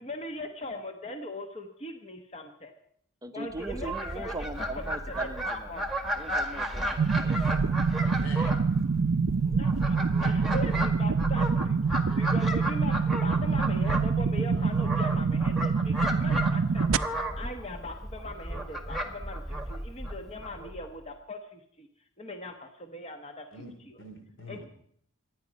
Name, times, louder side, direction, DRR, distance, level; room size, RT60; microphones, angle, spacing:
voice 1, 0.0-2.7 3.3-6.0 9.5-17.0 17.3-21.9 22.2-24.0 24.5-24.6, left 1 dB, 30° left, 5 dB, 1.2 m, -40 dB
voice 2, 3.2-5.7 6.2-7.8, right 2 dB, 15° right, 7 dB, 0.7 m, -40 dB
Fowl, 3.6-20.9, right 1 dB, ahead, 1.6 m, -34 dB
sound 1, 7.0-17.0, right 5 dB, 85° right, 0.6 m, -26 dB
voice 3, 8.0-8.6 23.5-24.6, left 1 dB, 65° left, 6 dB, 3.0 m, -45 dB
24.5 x 9.8 x 5.2 m, 0.66 s
head